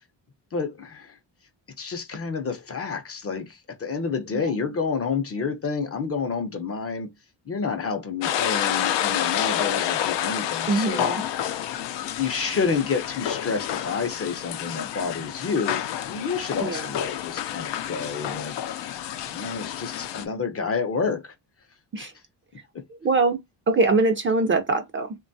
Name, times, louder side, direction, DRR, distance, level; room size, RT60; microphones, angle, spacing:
voice 1, 0.5-1.2 1.8-7.1 7.5-11.1 12.2-18.6 19.3-21.3 22.0-22.1 22.7-22.8, left 5 dB, 35° left, 0.6 m, -29 dB
sound 1, 8.2-20.3, left 11 dB, 80° left, 0.6 m, -29 dB
voice 2, 10.7-11.2 16.6-16.9 21.9-22.1 23.0-23.4 23.7-25.2, right 3 dB, 30° right, 0.5 m, -23 dB
2.9 x 2.2 x 2.6 m
cardioid pair, 120°, 43 cm